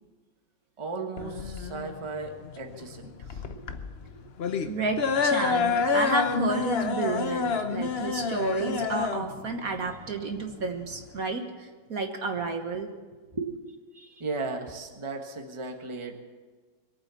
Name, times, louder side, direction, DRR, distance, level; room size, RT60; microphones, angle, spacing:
voice 1, 0.8-3.6 3.9-4.3 13.3-13.5 14.2-16.2, right 3 dB, 15° right, 4 dB, 1.3 m, -36 dB
sound 1, 1.2-11.2, left 5 dB, 50° left, 0.7 m, -28 dB
voice 2, 4.6-12.9 13.9-14.2, right 3 dB, 50° right, 5 dB, 1.6 m, -31 dB
22.5 x 8.7 x 6.9 m, 1.4 s
omnidirectional pair, 2.1 m